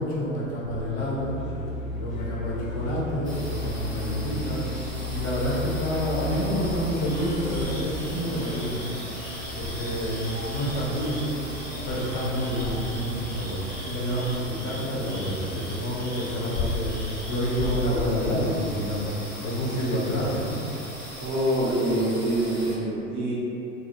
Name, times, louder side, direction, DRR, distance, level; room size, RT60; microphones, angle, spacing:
voice 1, 0.0-1.4 1.9-4.6 5.1-8.8 9.5-11.3 11.8-19.1 19.4-20.6, equal, 40° left, -6 dB, 0.6 m, -28 dB
sound 1, 1.1-19.3, equal, 85° left, 0.5 m, -37 dB
sound 2, 3.2-22.8, left 1 dB, 5° left, 0.7 m, -39 dB
sound 3, 7.0-17.8, equal, 75° right, 0.8 m, -42 dB
voice 2, 21.2-23.3, right 1 dB, 30° right, -7 dB, 0.4 m, -25 dB
2.2 x 2.0 x 2.8 m, 2.8 s
figure-of-eight pair, 80°, 40 cm